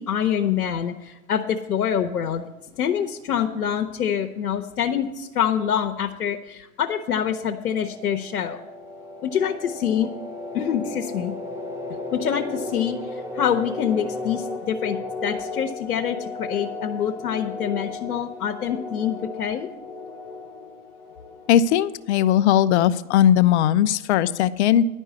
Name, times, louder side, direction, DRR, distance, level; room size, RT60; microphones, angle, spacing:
voice 1, 0.0-2.4 2.7-8.6 9.2-10.1 10.5-11.3 12.1-15.0 15.2-19.7, left 8 dB, 90° left, 4 dB, 0.9 m, -25 dB
sound 1, 7.5-22.1, left 3 dB, 5° right, 0.7 m, -35 dB
voice 2, 21.5-24.8, left 10 dB, 50° left, 14 dB, 0.5 m, -18 dB
10.5 x 5.4 x 8.2 m, 0.98 s
hypercardioid pair, 125°, 46 cm